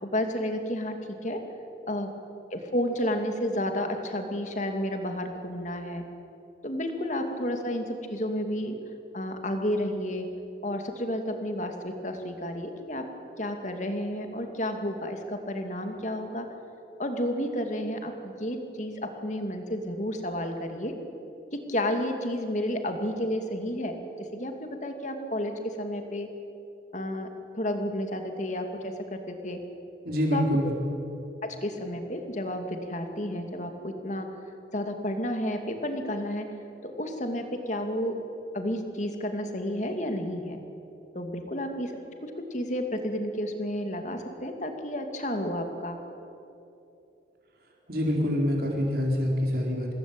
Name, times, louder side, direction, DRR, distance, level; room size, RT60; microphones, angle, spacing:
voice 1, 0.0-1.4 1.9-2.1 2.5-6.0 6.6-8.7 9.1-10.3 10.6-13.0 13.4-16.5 17.0-20.9 21.7-26.3 26.9-27.3 27.5-29.6 30.3-30.4 31.4-34.3 34.7-36.5 36.8-38.2 38.5-40.6 41.1-46.0, left 1 dB, 40° left, 5 dB, 2.6 m, -31 dB
voice 2, 30.0-30.7 47.9-50.0, equal, 50° right, -1 dB, 4.4 m, -26 dB
26.5 x 20.0 x 9.0 m, 2.8 s
head